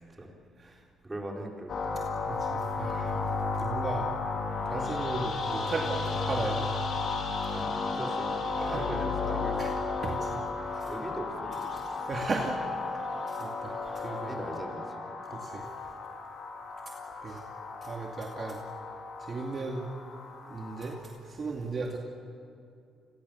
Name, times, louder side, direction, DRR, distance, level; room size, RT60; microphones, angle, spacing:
voice 1, 0.6-2.0 7.5-8.3 8.7-9.6 10.9-12.0 14.2-15.0, right 1 dB, 15° right, 0 dB, 4.5 m, -40 dB
sound 1, 1.7-21.0, left 4 dB, 55° left, 3.8 m, -34 dB
voice 2, 2.3-3.2 3.6-4.1 4.7-6.7 8.6-8.8 9.6-9.7 10.0-10.3 10.7-10.9 12.1-12.5 13.3-13.7 14.0-14.4 15.3-15.7 17.2-17.4 17.8-18.6 19.3-19.9 20.5-21.0 21.4-22.0, right 3 dB, 40° right, 0 dB, 2.4 m, -35 dB
29.5 x 22.0 x 7.1 m, 2.5 s
cardioid pair, 90°, 0 cm